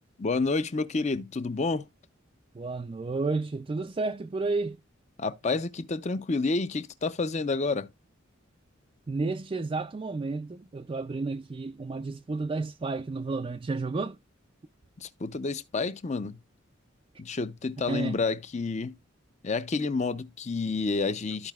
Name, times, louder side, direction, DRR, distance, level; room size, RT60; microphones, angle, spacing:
voice 1, 0.2-1.8 5.2-7.9 15.0-16.4 17.2-19.0 19.4-21.5, left 3 dB, 35° left, 0.5 m, -29 dB
voice 2, 2.5-4.8 9.1-14.2 17.9-18.2, right 3 dB, 25° right, 0.3 m, -31 dB
13.5 x 4.9 x 2.3 m
head